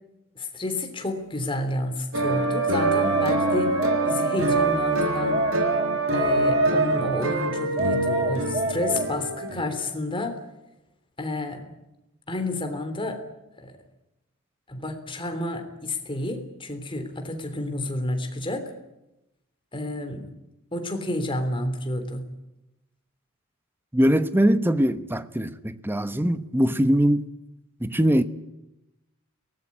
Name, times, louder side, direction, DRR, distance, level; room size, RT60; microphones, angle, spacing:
voice 1, 0.3-3.8 4.0-5.4 6.1-10.4 11.2-11.7 12.3-13.2 13.6-13.7 14.7-18.7 19.7-20.2 20.7-22.3, left 1 dB, 25° left, 6 dB, 3.4 m, -30 dB
sound 1, 2.1-9.7, right 2 dB, 65° right, 4.3 m, -24 dB
sound 2, 3.0-4.8 5.3-7.2 7.8-9.6, right 2 dB, 30° right, 2.0 m, -30 dB
voice 2, 23.9-27.3 27.8-28.2, equal, 10° right, 11 dB, 1.0 m, -22 dB
23.0 x 19.0 x 9.8 m, 0.94 s
head